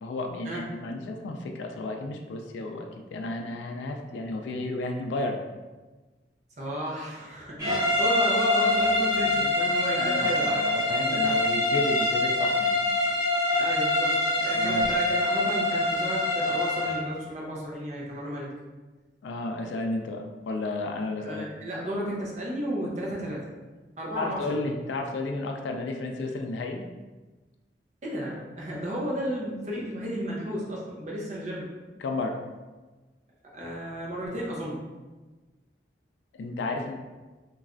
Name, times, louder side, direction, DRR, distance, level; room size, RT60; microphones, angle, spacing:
voice 1, 0.0-5.4 9.8-12.8 14.1-14.2 14.5-14.9 19.2-21.5 24.2-26.9 32.0-32.4 36.3-37.0, left 2 dB, 85° left, 4 dB, 0.3 m, -32 dB
voice 2, 6.6-10.6 11.0-11.3 13.6-18.5 21.2-23.4 24.0-24.6 28.0-31.7 33.5-34.8, equal, 40° right, -4 dB, 0.6 m, -33 dB
sound 1, 7.6-17.1, left 2 dB, 20° right, 1.0 m, -25 dB
3.1 x 2.3 x 2.4 m, 1.2 s
head